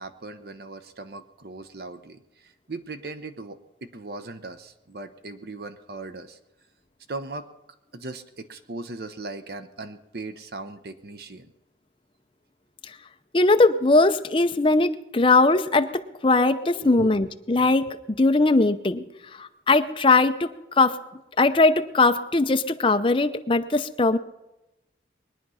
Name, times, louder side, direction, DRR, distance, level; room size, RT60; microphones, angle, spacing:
voice 1, 0.0-6.4 7.1-7.5 7.9-11.5 16.7-17.3 17.6-17.7, right 2 dB, 55° right, 10 dB, 0.8 m, -38 dB
voice 2, 13.3-19.0 19.4-20.5 20.8-21.0 21.4-24.2, left 3 dB, 30° left, 8 dB, 0.6 m, -20 dB
21.5 x 9.9 x 5.6 m, 0.96 s
head